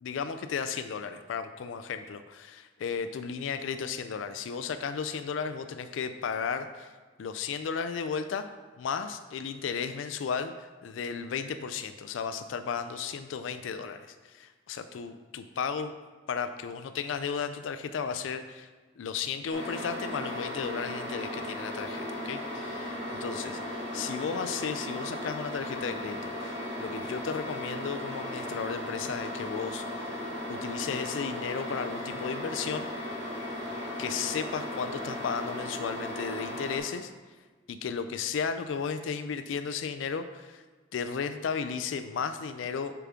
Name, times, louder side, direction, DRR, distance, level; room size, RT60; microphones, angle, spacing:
voice 1, 0.0-6.9 7.2-8.4 8.8-14.0 14.2-15.9 16.3-18.7 19.0-32.9 34.0-37.1 37.7-40.6 40.9-42.9, left 6 dB, 90° left, 9 dB, 0.4 m, -34 dB
sound 1, 19.5-36.8, left 1 dB, 80° right, 1.9 m, -36 dB
6.8 x 5.8 x 3.7 m, 1.4 s
head